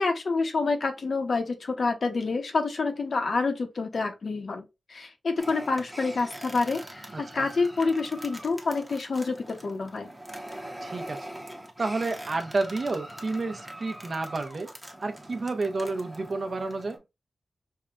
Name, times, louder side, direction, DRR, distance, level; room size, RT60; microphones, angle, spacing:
voice 1, 0.0-10.1, left 3 dB, 60° left, 0.8 m, -28 dB
sound 1, 5.4-17.0, right 1 dB, 5° right, 0.8 m, -42 dB
voice 2, 7.1-7.5 10.8-11.3 11.8-14.7 15.0-17.0, right 3 dB, 45° right, 0.7 m, -30 dB
5.4 x 2.2 x 2.4 m
wide cardioid pair, 115°, 0 cm